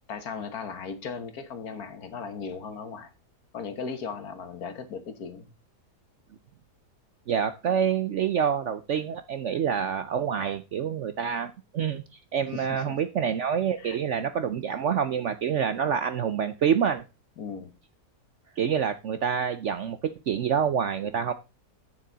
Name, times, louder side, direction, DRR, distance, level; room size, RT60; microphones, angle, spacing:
voice 1, 0.1-3.1 3.5-5.5 12.5-13.0 13.8-14.0 17.4-17.7, left 5 dB, 65° left, 1.7 m, -37 dB
voice 2, 7.3-12.0 12.3-17.0 18.6-21.3, right 7 dB, 60° right, 0.8 m, -27 dB
9.0 x 7.3 x 4.0 m
omnidirectional pair, 1.8 m